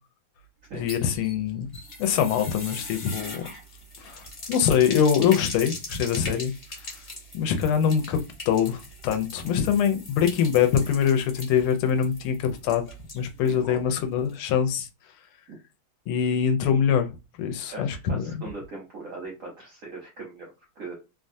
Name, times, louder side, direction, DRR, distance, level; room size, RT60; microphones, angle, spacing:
sound 1, 0.6-13.6 13.9-14.0 14.3-14.4, left 2 dB, 35° left, 0.8 m, -40 dB
voice 1, 0.7-1.7 2.0-3.4 4.0-4.2 4.5-6.5 7.3-8.2 8.5-12.8 13.1-14.9 16.1-17.1 17.4-18.3, left 8 dB, 85° left, 1.4 m, -23 dB
voice 2, 13.4-13.8 15.5-15.6 17.7-20.9, right 3 dB, 65° right, 0.8 m, -40 dB
3.4 x 2.2 x 2.6 m
omnidirectional pair, 2.3 m